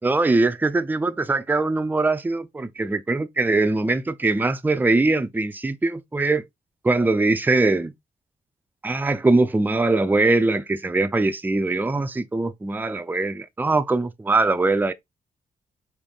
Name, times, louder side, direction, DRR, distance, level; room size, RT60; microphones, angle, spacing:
voice 1, 0.0-6.4 6.8-7.9 8.8-14.9, right 3 dB, 10° right, 0.4 m, -22 dB
5.3 x 2.6 x 3.5 m
cardioid pair, 65°, 16 cm